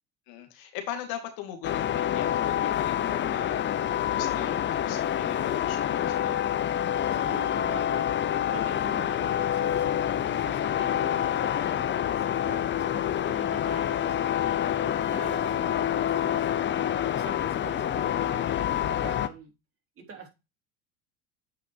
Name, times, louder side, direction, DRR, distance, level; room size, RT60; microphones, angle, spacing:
voice 1, 0.3-6.6, left 10 dB, 60° left, 5 dB, 2.2 m, -40 dB
sound 1, 1.6-19.3, left 10 dB, 30° left, 0.7 m, -27 dB
voice 2, 7.1-8.1 8.5-19.5 20.0-20.3, right 5 dB, 35° right, 2 dB, 3.4 m, -45 dB
9.2 x 5.1 x 2.8 m, 0.25 s
hypercardioid pair, 90°, 40 cm